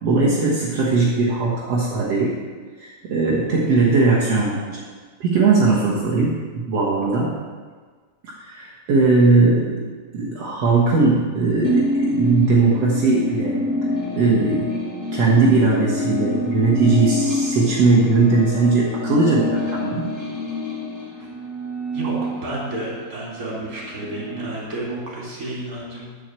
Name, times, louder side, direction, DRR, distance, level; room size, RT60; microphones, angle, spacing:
voice 1, 0.0-2.4 2.8-4.8 5.2-7.3 8.2-9.8 10.1-13.6 14.2-14.8 15.1-20.1, right 3 dB, 60° right, -5 dB, 1.6 m, -19 dB
sound 1, 11.6-23.0 23.4-24.5, left 1 dB, 25° left, 1.5 m, -26 dB
voice 2, 22.4-26.1, right 2 dB, 25° right, -4 dB, 3.0 m, -31 dB
9.8 x 6.4 x 7.5 m, 1.5 s
omnidirectional pair, 4.7 m